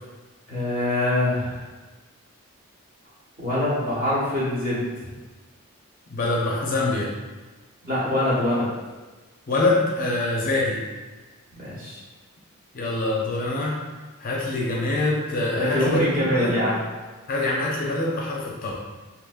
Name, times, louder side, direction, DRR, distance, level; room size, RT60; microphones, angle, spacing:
voice 1, 0.5-1.6 3.4-4.8 7.9-8.7 11.5-12.0 15.5-16.8, left 1 dB, 40° right, -9 dB, 1.1 m, -24 dB
voice 2, 6.1-7.1 9.5-10.8 12.7-13.7 14.2-16.6 17.3-18.7, left 2 dB, 40° left, -3 dB, 0.5 m, -24 dB
3.5 x 2.8 x 2.4 m, 1.3 s
head